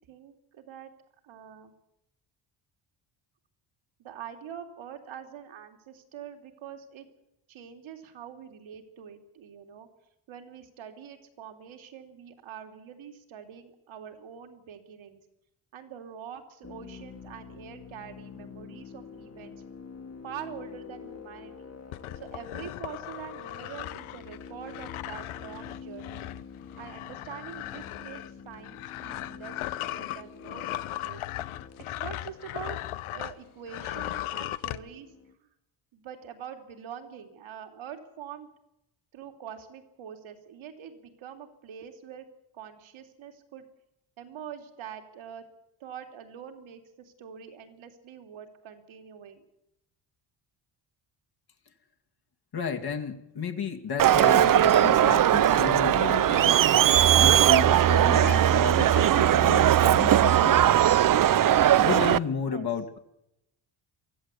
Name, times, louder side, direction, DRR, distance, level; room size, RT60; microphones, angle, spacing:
voice 1, 0.1-0.9 1.2-1.7 4.0-7.1 7.5-9.9 10.3-15.2 15.7-19.6 20.2-21.7 22.2-26.3 26.8-31.2 31.8-35.1 35.4-35.5 35.9-38.5 39.1-42.2 42.5-43.7 44.2-45.4 45.8-49.4 62.4-62.7, right 8 dB, 70° right, 6 dB, 3.4 m, -44 dB
sound 1, 16.6-35.3, left 6 dB, 30° left, 2.2 m, -47 dB
sound 2, 21.9-33.4 33.7-34.8, left 15 dB, 80° left, 1.1 m, -37 dB
voice 2, 52.5-56.7 57.2-60.7 61.8-63.0, left 6 dB, 50° left, 5 dB, 2.4 m, -33 dB
Crowd, 54.0-62.2, right 11 dB, 40° right, 0.7 m, -19 dB
23.5 x 14.5 x 8.5 m, 0.85 s
cardioid pair, 85°, 49 cm